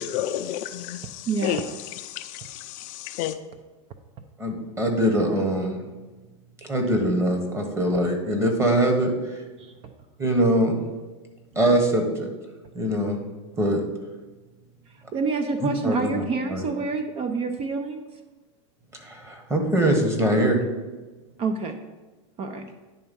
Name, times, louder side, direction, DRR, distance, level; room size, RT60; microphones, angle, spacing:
voice 1, 0.0-3.4, left 12 dB, 50° left, 0.4 m, -31 dB
voice 2, 1.3-1.7 9.6-9.9 15.1-18.0 21.4-21.8 22.4-22.7, right 4 dB, 35° right, 0.6 m, -27 dB
voice 3, 4.4-5.8 6.7-9.1 10.2-10.8 11.5-12.3 12.7-13.2 13.6-13.8 15.6-16.6 18.9-20.6, right 1 dB, 15° right, 1.5 m, -23 dB
10.0 x 3.5 x 5.4 m
hypercardioid pair, 120°, 17 cm